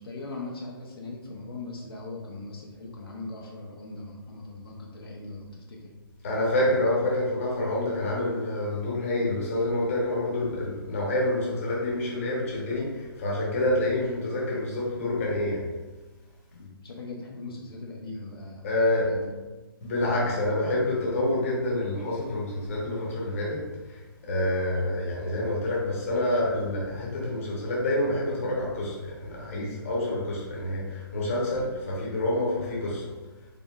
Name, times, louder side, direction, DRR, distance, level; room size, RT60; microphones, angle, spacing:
voice 1, 0.0-6.0 6.6-6.8 7.1-7.7 16.5-19.3 20.0-20.3 24.8-24.9, left 3 dB, 75° left, -1 dB, 0.7 m, -40 dB
voice 2, 6.2-15.7 18.6-19.1 19.8-33.1, left 1 dB, 35° left, -4 dB, 1.1 m, -27 dB
3.7 x 3.7 x 2.4 m, 1.2 s
hypercardioid pair, 170°, 12 cm